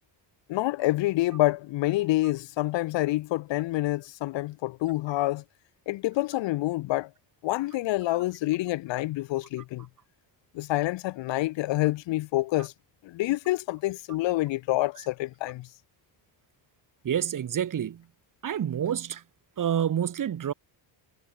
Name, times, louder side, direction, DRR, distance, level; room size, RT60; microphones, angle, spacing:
voice 1, 0.5-5.4 5.9-7.1 7.4-9.9 10.5-12.7 13.0-15.7, left 18 dB, 65° left, 0.5 m, -27 dB
voice 2, 17.0-18.0 18.4-19.2 19.6-20.5, right 9 dB, 40° right, 1.7 m, -28 dB
cardioid pair, 170°, 48 cm